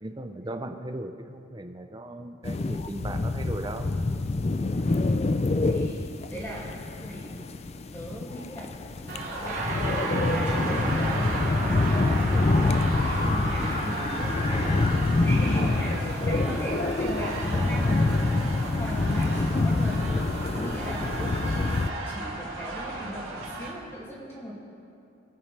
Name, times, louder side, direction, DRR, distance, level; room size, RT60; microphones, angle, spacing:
voice 1, 0.0-3.9 16.5-16.6, right 1 dB, 20° right, 7 dB, 0.6 m, -37 dB
sound 1, 2.4-21.9, left 2 dB, 30° left, 0.4 m, -26 dB
voice 2, 5.3-7.4 7.9-11.4 11.6-12.5 13.0-14.6 15.0-24.5, equal, 10° left, -6 dB, 2.4 m, -39 dB
sound 2, 9.1-23.7, right 2 dB, 85° right, 3.4 m, -36 dB
sound 3, 9.4-18.9, right 2 dB, 35° right, 1.2 m, -36 dB
22.5 x 8.9 x 3.4 m, 2.7 s
head